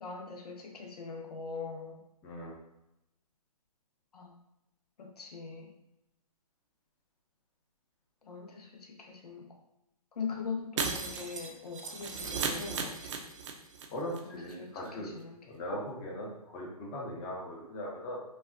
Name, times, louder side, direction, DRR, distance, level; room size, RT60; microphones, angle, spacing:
voice 1, 0.0-2.0 4.1-4.3 5.0-5.7 8.2-9.5 10.1-13.1 14.2-15.4, left 5 dB, 75° left, 3 dB, 0.7 m, -41 dB
voice 2, 2.2-2.5 13.9-15.1 15.5-18.2, equal, 20° left, -2 dB, 0.8 m, -39 dB
Shatter, 10.8-13.8 14.1-14.2 14.5-14.6, right 5 dB, 50° right, 0.6 m, -35 dB
5.4 x 2.3 x 2.6 m, 0.87 s
hypercardioid pair, 145°, 20 cm